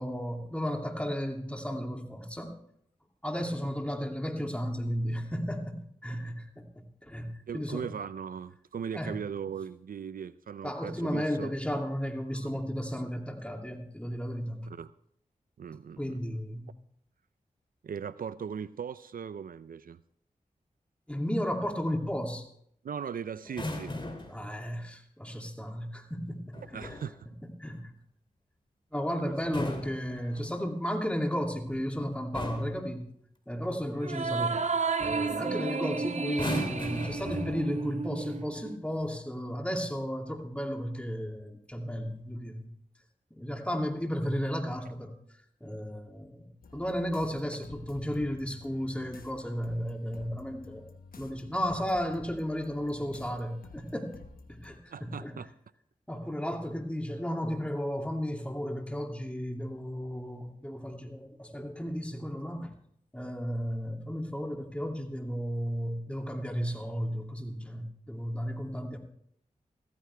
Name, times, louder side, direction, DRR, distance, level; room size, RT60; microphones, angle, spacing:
voice 1, 0.0-2.5 3.2-7.9 8.9-9.2 10.6-14.7 16.0-16.7 21.1-22.4 24.3-26.8 27.4-27.9 28.9-33.0 33.5-34.6 35.0-42.7 43.3-45.1 45.6-46.4 46.7-50.9 51.2-54.2 54.5-55.4 56.1-62.7 63.1-69.0, equal, 10° left, 2 dB, 2.6 m, -34 dB
voice 2, 7.5-11.5 12.3-12.5 14.7-14.9 15.6-16.4 17.8-20.0 22.8-24.0 26.7-27.2 29.2-29.3 54.9-55.5, right 7 dB, 75° right, 15 dB, 0.5 m, -39 dB
sound 1, 23.4-24.4 26.5-27.1 29.3-30.7 31.7-31.9 32.3-32.8 34.5-34.7 35.0-35.3 36.3-37.9 38.9-39.1, left 1 dB, 35° left, 2.8 m, -38 dB
sound 2, 34.0-38.8, right 4 dB, 50° right, 0.8 m, -32 dB
sound 3, 46.6-54.8, left 3 dB, 80° left, 1.2 m, -51 dB
15.0 x 14.0 x 3.4 m, 0.68 s
cardioid pair, 40°, 15 cm